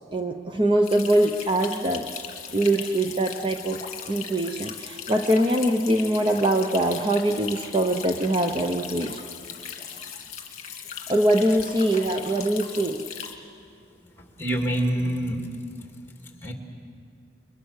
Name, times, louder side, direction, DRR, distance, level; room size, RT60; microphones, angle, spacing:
voice 1, 0.1-2.1 2.5-3.8 4.1-9.2 11.1-13.0, right 1 dB, 25° right, 4 dB, 0.9 m, -23 dB
Little Water Fountain, 0.8-13.3, left 7 dB, 40° left, 2.2 m, -38 dB
voice 2, 14.4-15.4 16.0-16.5, right 1 dB, 15° left, 2 dB, 2.5 m, -26 dB
29.5 x 22.5 x 6.6 m, 2.4 s
head